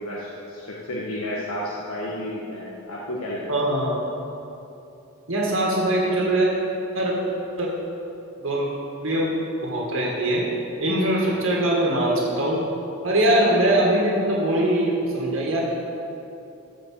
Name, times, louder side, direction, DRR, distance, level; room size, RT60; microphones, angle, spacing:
voice 1, 0.0-3.6, left 1 dB, 80° left, -5 dB, 1.3 m, -32 dB
voice 2, 3.5-4.0 5.3-6.5 6.9-7.2 7.6-7.7 8.4-8.7 9.0-9.3 9.6-10.4 10.8-12.6 13.0-15.6, right 1 dB, 65° right, -3 dB, 1.9 m, -22 dB
13.5 x 5.1 x 7.5 m, 2.8 s
head